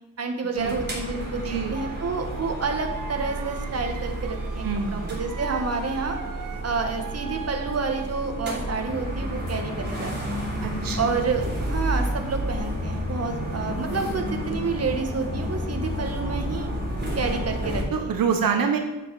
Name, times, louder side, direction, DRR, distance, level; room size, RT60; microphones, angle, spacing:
voice 1, 0.2-6.2 6.6-10.4 11.0-16.7 17.2-18.1, right 4 dB, 45° right, 4 dB, 1.6 m, -29 dB
sound 1, 0.6-17.8, equal, 30° right, 3.8 m, -31 dB
voice 2, 1.4-1.8 4.6-5.2 10.6-11.2 17.9-18.8, right 6 dB, 85° right, 4 dB, 1.1 m, -26 dB
sound 2, 1.7-8.2, right 7 dB, 70° right, 0.7 m, -40 dB
9.8 x 8.2 x 4.9 m, 1.1 s
wide cardioid pair, 105°, 33 cm